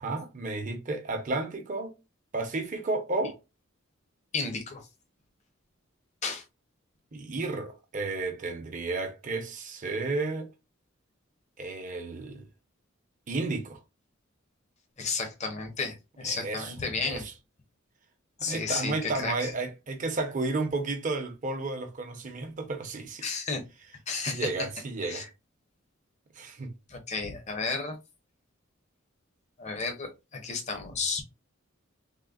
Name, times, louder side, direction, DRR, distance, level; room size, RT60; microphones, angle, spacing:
voice 1, 0.0-2.0 2.3-3.4 7.1-10.5 11.6-12.5 13.3-13.8 16.2-16.7 17.0-17.3 18.4-23.2 24.1-25.3 26.3-26.7, right 3 dB, 40° right, 0.6 m, -32 dB
voice 2, 4.3-4.8 6.2-6.4 15.0-17.2 18.4-19.5 23.2-23.6 24.1-24.5 25.0-25.3 26.9-28.0 29.6-31.2, left 4 dB, 35° left, 0.6 m, -32 dB
3.5 x 2.0 x 2.3 m
head